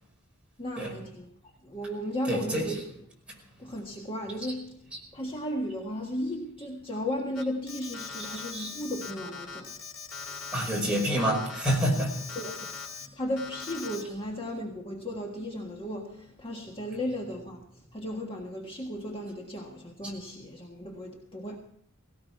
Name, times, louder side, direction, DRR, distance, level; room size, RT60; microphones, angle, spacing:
voice 1, 0.6-1.3 1.6-2.8 3.6-9.8 10.2-10.4 12.3-12.5 13.0-21.6, left 1 dB, 25° left, 1.6 m, -35 dB
voice 2, 2.3-2.8 8.2-8.7 10.5-12.4 20.0-20.1, right 1 dB, 5° right, 5.4 m, -28 dB
Alarm, 7.3-13.1 13.4-14.0, left 5 dB, 85° left, 2.8 m, -41 dB
17.5 x 17.5 x 4.7 m
head